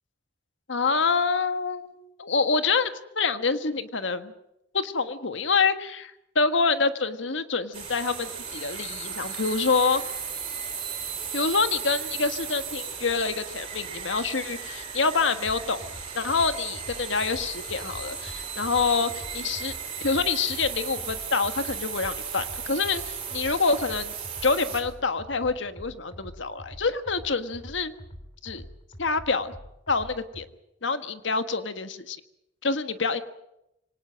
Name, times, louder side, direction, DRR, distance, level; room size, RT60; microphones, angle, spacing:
voice 1, 0.7-4.3 4.7-10.0 11.3-15.9 16.1-19.7 20.0-24.1 24.4-27.9 28.4-28.6 29.0-29.5 29.9-30.5 30.8-32.2 32.6-33.2, left 4 dB, 70° left, 10 dB, 1.6 m, -26 dB
sound 1, 7.7-24.8, right 7 dB, 30° right, 6.1 m, -36 dB
sound 2, 15.4-30.5, equal, 30° left, 2.9 m, -45 dB
25.0 x 18.5 x 7.6 m, 0.85 s
head